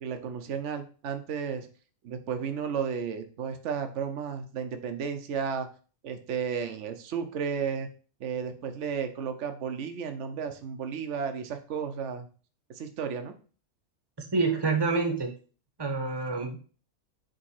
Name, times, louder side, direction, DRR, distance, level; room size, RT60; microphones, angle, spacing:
voice 1, 0.0-1.7 2.0-5.7 6.0-7.9 8.2-12.3 12.7-13.3, right 6 dB, 60° right, 8 dB, 1.1 m, -33 dB
voice 2, 14.2-15.3 15.8-16.6, right 4 dB, 20° right, 4 dB, 1.0 m, -27 dB
5.2 x 3.7 x 5.6 m, 0.39 s
omnidirectional pair, 1.5 m